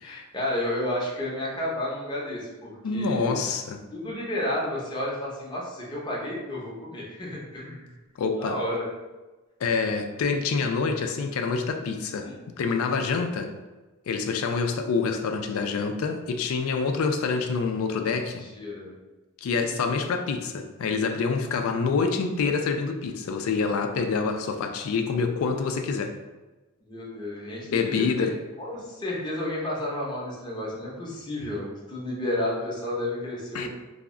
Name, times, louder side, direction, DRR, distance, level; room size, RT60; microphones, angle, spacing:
voice 1, 0.0-3.5 3.9-7.9 8.4-8.8 12.2-12.4 18.5-18.9 19.4-19.9 26.8-28.3 28.6-33.7, left 1 dB, 20° left, -5 dB, 0.6 m, -32 dB
voice 2, 2.8-3.8 8.2-8.6 9.6-13.5 14.1-18.5 19.4-26.2 27.6-28.4 33.5-33.7, left 4 dB, 65° left, 6 dB, 0.3 m, -27 dB
2.2 x 2.0 x 3.6 m, 1.2 s
head